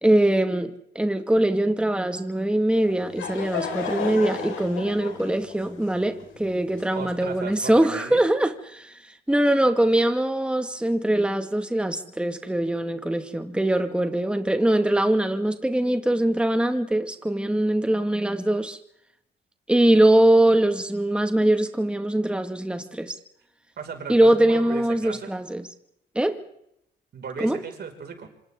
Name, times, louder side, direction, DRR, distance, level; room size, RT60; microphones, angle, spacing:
voice 1, 0.0-18.8 19.7-23.1 24.1-25.7 26.1-26.4 27.4-27.6, right 1 dB, 5° right, 1.8 m, -22 dB
Laughter / Crowd, 2.8-7.4, left 6 dB, 80° left, 4.9 m, -34 dB
voice 2, 6.9-8.2 23.8-25.3 27.1-28.3, right 6 dB, 55° right, 5.4 m, -36 dB
26.5 x 26.0 x 3.7 m
cardioid pair, 90°, 20 cm